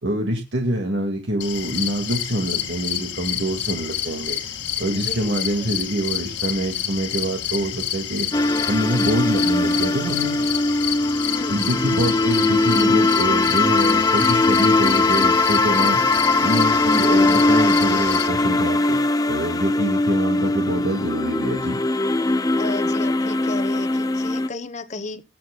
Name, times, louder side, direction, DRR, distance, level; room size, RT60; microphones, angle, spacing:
voice 1, 0.0-4.4 4.8-8.3 8.7-10.4 11.5-16.0 16.4-19.0 19.3-21.8, right 1 dB, 65° right, 1.9 m, -25 dB
sound 1, 1.4-18.3, left 10 dB, 70° left, 1.8 m, -29 dB
voice 2, 4.9-5.7 11.3-11.7 19.7-19.9 22.6-25.2, left 2 dB, 40° left, 1.0 m, -34 dB
sound 2, 8.3-24.5, left 2 dB, 20° left, 0.5 m, -20 dB
22.0 x 7.6 x 2.2 m
head